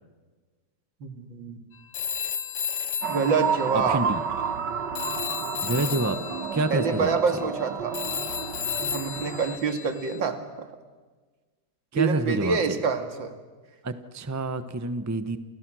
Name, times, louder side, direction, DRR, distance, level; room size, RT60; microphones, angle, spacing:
voice 1, 1.0-1.6 3.1-4.0 6.7-8.0 8.8-10.7 11.9-13.3, right 5 dB, 85° right, 7 dB, 2.8 m, -27 dB
Telephone, 1.9-4.7 5.0-10.2, left 8 dB, 65° left, 1.8 m, -34 dB
sound 1, 3.0-9.6, right 6 dB, 70° right, 1.9 m, -31 dB
voice 2, 3.7-4.2 5.6-6.2 6.5-7.2 11.9-12.8 13.8-15.4, right 2 dB, 15° right, 11 dB, 0.7 m, -27 dB
30.0 x 29.0 x 6.3 m, 1.4 s
omnidirectional pair, 2.0 m